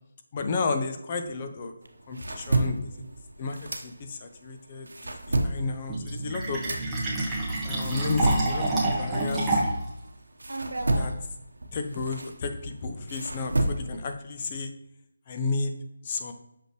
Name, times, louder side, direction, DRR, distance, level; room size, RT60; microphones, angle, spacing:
voice 1, 0.3-1.7 2.1-2.9 3.4-3.6 3.8-4.9 5.4-6.6 7.6-9.5 10.9-11.1 11.7-14.7 15.3-15.8 16.0-16.3, left 4 dB, 30° left, 6 dB, 0.7 m, -32 dB
sound 1, 1.8-4.4 4.7-10.0 10.4-14.1, right 1 dB, 85° right, 0.9 m, -31 dB
Fill (with liquid), 5.9-9.9, right 2 dB, 5° right, 1.3 m, -28 dB
6.4 x 5.4 x 3.0 m, 0.80 s
figure-of-eight pair, 160°, 0 cm